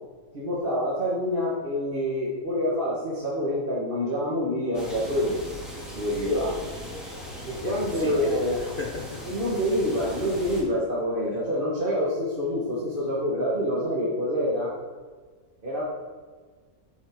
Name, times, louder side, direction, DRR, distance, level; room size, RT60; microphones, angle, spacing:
voice 1, 0.3-5.4 5.9-6.7 7.5-8.6 9.2-14.7 15.6-15.8, equal, 35° right, -7 dB, 1.7 m, -26 dB
sound 1, 4.7-10.6, left 1 dB, ahead, 2.2 m, -39 dB
voice 2, 7.6-9.6 11.3-11.4, left 5 dB, 55° left, 2 dB, 0.6 m, -37 dB
9.8 x 7.3 x 3.7 m, 1.5 s
omnidirectional pair, 1.6 m